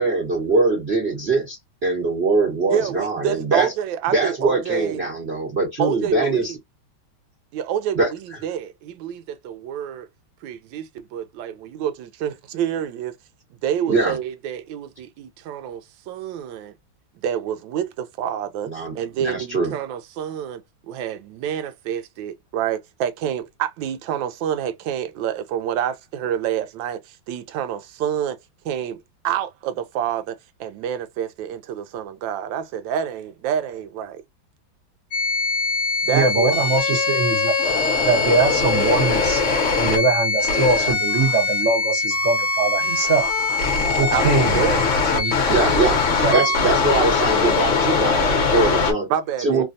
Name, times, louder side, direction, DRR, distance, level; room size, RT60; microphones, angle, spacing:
voice 1, 0.0-3.7 4.1-6.5 8.0-8.1 13.9-14.1 18.6-19.7 45.5-46.0 46.3-49.1 49.4-49.6, right 3 dB, 35° right, 1.2 m, -22 dB
voice 2, 2.7-5.0 5.8-6.6 7.5-10.1 10.4-13.2 13.6-16.7 17.2-20.6 20.9-28.4 28.6-34.2 36.0-36.5 44.1-44.9 49.1-49.6, right 9 dB, 75° right, 1.2 m, -28 dB
sound 1, 35.1-48.9, left 4 dB, 50° left, 0.9 m, -21 dB
voice 3, 36.1-37.5 38.0-39.4 39.8-43.3 43.9-44.6 45.1-45.3 46.2-46.4, right 3 dB, 55° right, 0.9 m, -22 dB
3.3 x 2.2 x 2.5 m
omnidirectional pair, 2.2 m